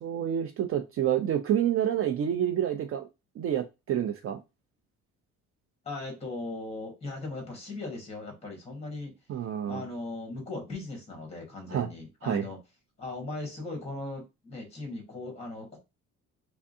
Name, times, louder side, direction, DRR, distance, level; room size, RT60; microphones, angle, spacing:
voice 1, 0.0-3.0 3.4-4.4 9.3-9.8 11.7-11.9 12.2-12.5, right 10 dB, 45° right, 0.4 m, -28 dB
voice 2, 5.8-9.1 9.7-12.6 13.0-15.8, left 2 dB, 20° left, 1.4 m, -38 dB
3.5 x 3.3 x 2.6 m
cardioid pair, 175°, 30 cm